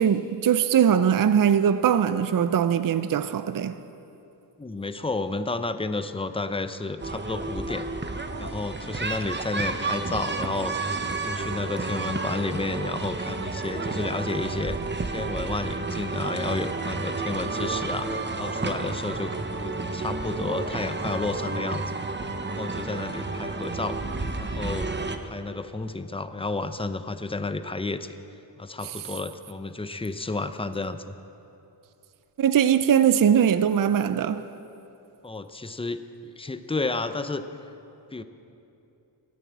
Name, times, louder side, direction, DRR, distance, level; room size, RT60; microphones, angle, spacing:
voice 1, 0.0-3.8 32.4-34.4, right 8 dB, 45° right, 0.5 m, -21 dB
voice 2, 4.6-7.9 8.4-10.7 11.2-14.8 15.0-21.8 22.4-24.0 24.4-24.9 25.2-28.2 28.6-31.2 35.2-37.4 38.1-38.2, left 3 dB, 10° left, 0.7 m, -31 dB
sound 1, 7.0-25.2, right 3 dB, 25° right, 0.9 m, -31 dB
14.5 x 9.3 x 8.5 m
cardioid pair, 70°, 46 cm